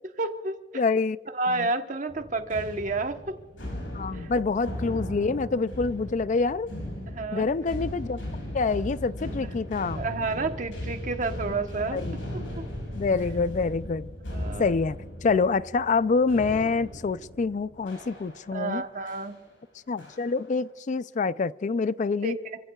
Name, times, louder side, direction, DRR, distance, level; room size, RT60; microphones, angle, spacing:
voice 1, 0.2-0.8 1.3-3.2 4.1-4.3 7.1-7.5 9.4-9.5 9.9-12.0 12.5-12.6 14.3-14.7 18.5-19.4 22.2-22.6, right 3 dB, 40° right, 6 dB, 1.1 m, -30 dB
voice 2, 0.7-1.2 1.5-1.7 3.9-6.7 7.3-8.2 8.5-10.1 11.9-12.2 12.9-14.1 14.6-18.8 19.9-22.4, left 4 dB, 40° left, 17 dB, 0.3 m, -26 dB
sound 1, 2.1-18.6 19.1-19.4 20.0-20.5, equal, 85° left, 5.9 m, -37 dB
30.0 x 15.5 x 2.3 m, 1.3 s
head